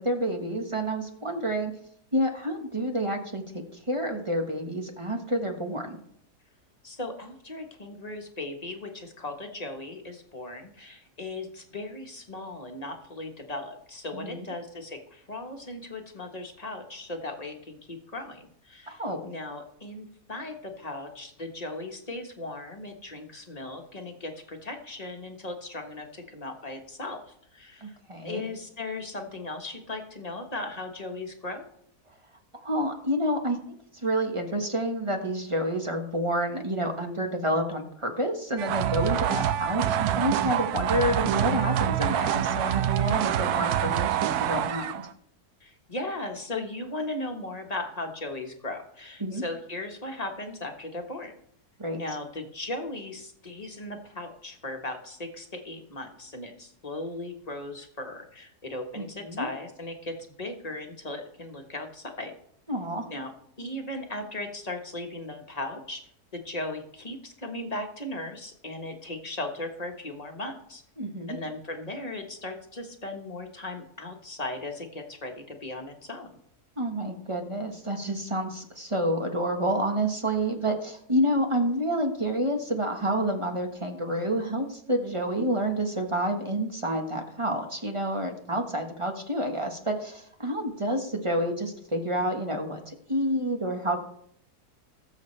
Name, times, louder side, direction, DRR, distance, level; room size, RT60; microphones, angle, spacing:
voice 1, 0.0-1.7 2.1-3.4 3.7-6.0 14.1-14.4 18.9-19.2 27.8-28.4 32.6-33.6 34.0-45.0 49.2-49.4 51.8-52.0 59.0-59.5 62.7-63.1 71.0-71.4 76.8-94.0, right 1 dB, 20° right, 3 dB, 1.2 m, -29 dB
voice 2, 6.8-27.2 27.5-27.9 28.2-31.7 45.6-51.3 51.9-62.3 63.1-63.3 63.6-66.0 66.3-70.8 71.3-76.3, left 2 dB, 25° left, 3 dB, 1.3 m, -37 dB
sound 1, 38.6-45.1, right 10 dB, 75° right, 1.1 m, -26 dB
18.5 x 7.4 x 3.2 m, 0.68 s
omnidirectional pair, 1.7 m